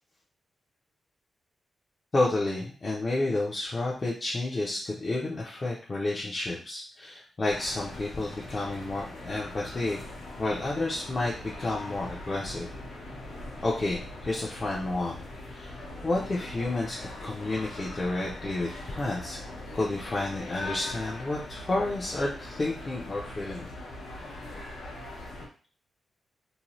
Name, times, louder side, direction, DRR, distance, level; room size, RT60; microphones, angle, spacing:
voice 1, 2.1-10.0 10.4-12.7 13.6-15.3 15.5-15.8 16.0-19.4 19.7-23.7, left 2 dB, 25° left, -4 dB, 0.5 m, -30 dB
sound 1, 7.5-25.5, left 1 dB, 85° left, 0.8 m, -41 dB
2.7 x 2.1 x 2.9 m, 0.38 s
wide cardioid pair, 170°, 0 cm